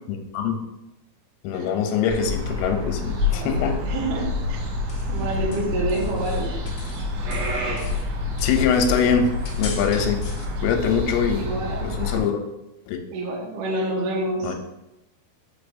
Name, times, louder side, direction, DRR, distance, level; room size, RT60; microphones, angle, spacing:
voice 1, 0.1-0.6 1.4-3.8 8.4-10.2 10.6-11.5 11.8-12.4 12.9-13.0 14.4-14.5, left 6 dB, 90° left, 4 dB, 3.2 m, -23 dB
sound 1, 2.1-12.2, left 3 dB, 90° right, 4.3 m, -27 dB
voice 2, 3.3-4.6 5.1-6.6 11.3-12.1 13.1-14.5, right 2 dB, 70° right, -3 dB, 2.7 m, -28 dB
sound 2, 4.6-7.1 7.3-10.5, left 4 dB, 70° left, 2.6 m, -41 dB
6.7 x 5.5 x 2.6 m, 0.92 s
omnidirectional pair, 5.9 m